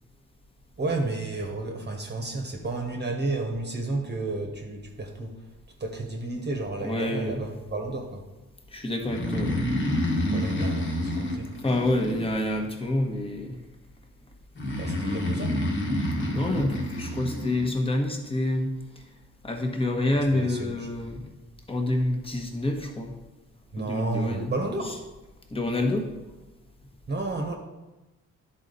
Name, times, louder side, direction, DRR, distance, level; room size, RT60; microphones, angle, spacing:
voice 1, 0.8-5.3 5.8-8.2 10.3-11.5 14.8-15.6 20.1-20.9 23.7-25.0 27.1-27.6, right 2 dB, 35° right, 2 dB, 1.2 m, -32 dB
voice 2, 6.8-7.4 8.7-9.6 11.6-13.6 16.2-19.0 19.4-21.2 21.7-23.1 23.8-24.5 24.9-25.0 25.5-26.1, left 1 dB, 20° left, 3 dB, 1.2 m, -27 dB
Breathing, 9.0-12.7 14.6-17.7, left 1 dB, 40° left, 1.5 m, -28 dB
10.5 x 4.1 x 4.0 m, 1.1 s
cardioid pair, 90°, 30 cm